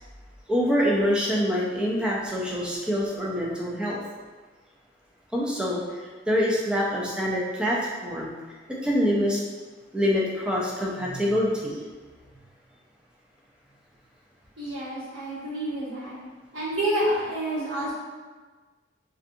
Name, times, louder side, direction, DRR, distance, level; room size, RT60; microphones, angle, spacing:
voice 1, 0.5-4.0 5.3-5.8 6.3-8.3 8.8-9.4 9.9-11.8, equal, 5° right, -4 dB, 0.4 m, -25 dB
voice 2, 14.6-16.1 16.5-17.9, right 1 dB, 75° right, -10 dB, 1.3 m, -28 dB
2.6 x 2.3 x 2.5 m, 1.3 s
head